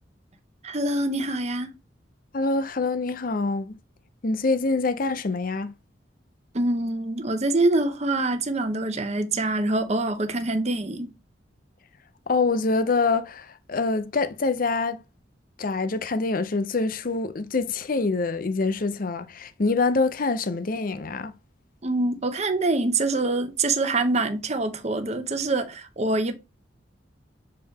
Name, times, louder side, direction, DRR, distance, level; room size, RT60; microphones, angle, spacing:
voice 1, 0.6-1.7 6.5-11.1 21.8-26.3, right 2 dB, 35° right, 0.8 m, -25 dB
voice 2, 2.3-3.8 4.2-5.7 12.3-15.0 15.6-21.3, left 3 dB, 50° left, 0.6 m, -25 dB
6.7 x 4.2 x 3.6 m
head